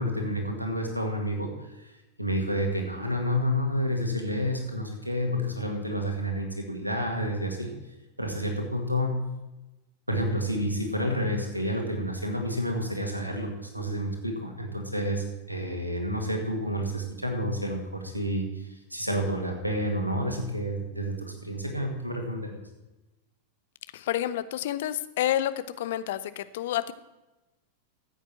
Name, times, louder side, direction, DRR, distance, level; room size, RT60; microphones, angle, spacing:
voice 1, 0.0-1.9 2.2-7.7 8.2-9.2 10.1-22.6, equal, 90° right, 3 dB, 1.9 m, -29 dB
voice 2, 23.9-25.5 25.8-26.9, left 12 dB, 55° left, 14 dB, 0.6 m, -29 dB
14.0 x 8.2 x 4.4 m, 1.0 s
figure-of-eight pair, 90°, 0 cm